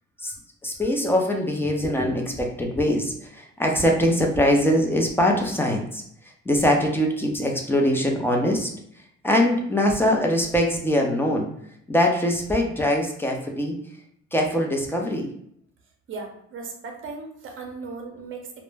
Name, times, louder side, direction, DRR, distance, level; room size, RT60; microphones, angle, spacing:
voice 1, 0.6-8.7 9.2-11.5 11.9-13.8 14.3-15.3, left 1 dB, 10° left, 1 dB, 0.5 m, -22 dB
voice 2, 16.1-18.6, right 4 dB, 45° right, 2 dB, 0.6 m, -37 dB
2.1 x 2.0 x 3.2 m, 0.70 s
cardioid pair, 90°, 30 cm